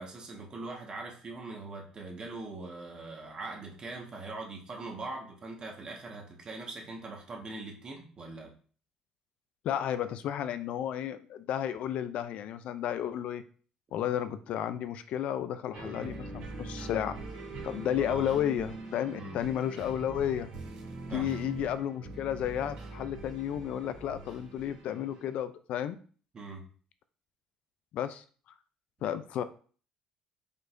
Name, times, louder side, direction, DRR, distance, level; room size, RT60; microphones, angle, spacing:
voice 1, 0.0-8.5 18.1-18.4 19.1-19.4 21.1-21.3 26.3-26.6, right 3 dB, 40° right, 1 dB, 1.4 m, -42 dB
voice 2, 9.6-13.4 13.9-17.2 17.6-20.5 21.1-26.0 27.9-28.2 29.0-29.4, left 10 dB, 70° left, 12 dB, 0.4 m, -32 dB
sound 1, 15.7-25.4, right 2 dB, 85° right, 2.4 m, -43 dB
5.1 x 4.0 x 2.6 m, 0.42 s
cardioid pair, 90°, 2 cm